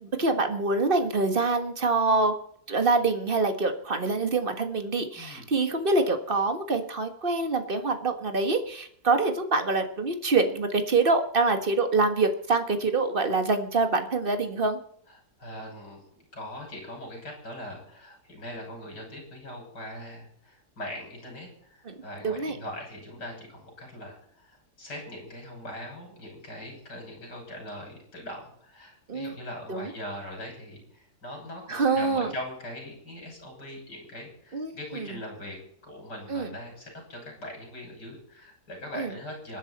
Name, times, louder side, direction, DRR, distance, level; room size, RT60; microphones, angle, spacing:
voice 1, 0.0-2.3 2.7-14.8 21.9-22.0 22.2-22.6 29.1-29.4 29.7-29.9 31.7-32.3 34.5-35.1 36.3-36.5 38.9-39.1, right 3 dB, 35° right, 7 dB, 1.7 m, -25 dB
voice 2, 5.1-5.5 15.1-16.0 16.3-35.6 35.8-39.6, left 1 dB, 80° left, 0 dB, 7.2 m, -41 dB
26.0 x 10.0 x 4.3 m, 0.66 s
omnidirectional pair, 1.8 m